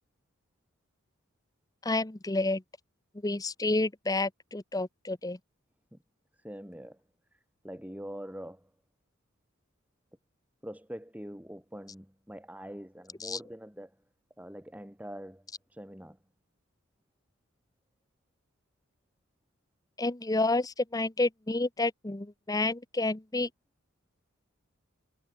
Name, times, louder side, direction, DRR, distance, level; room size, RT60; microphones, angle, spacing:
voice 1, 1.8-2.6 3.2-5.4 13.2-13.4 20.0-23.5, left 2 dB, 15° left, 0.8 m, -29 dB
voice 2, 6.3-7.0 7.3-8.7 10.6-14.0 14.4-16.2, equal, 5° right, 3.9 m, -44 dB
head